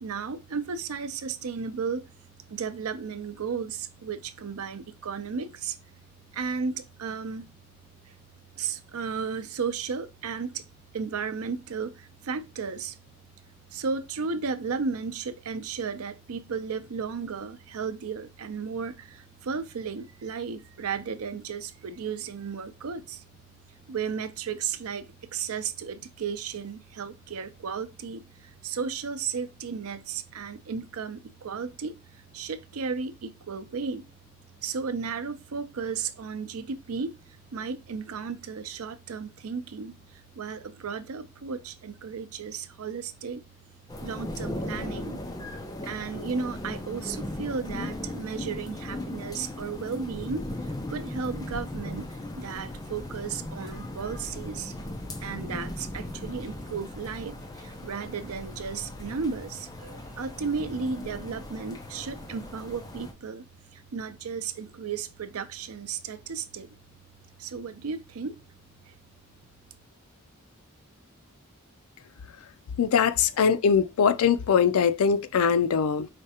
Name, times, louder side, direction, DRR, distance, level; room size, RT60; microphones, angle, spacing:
voice 1, 0.0-2.0 2.5-5.7 6.3-7.5 8.6-10.6 10.9-11.9 12.2-12.9 13.7-19.0 19.4-23.2 23.9-28.3 28.6-31.9 32.3-34.0 34.6-37.1 37.5-40.0 40.4-43.4 44.0-45.2 45.8-50.4 50.9-52.1 52.4-54.7 55.2-57.3 57.8-63.4 63.9-66.7 67.4-68.4, right 5 dB, 75° right, 0.5 m, -34 dB
sound 1, 43.9-63.1, left 1 dB, 15° left, 0.5 m, -38 dB
voice 2, 72.8-76.1, left 6 dB, 75° left, 0.4 m, -22 dB
4.9 x 3.2 x 2.8 m
head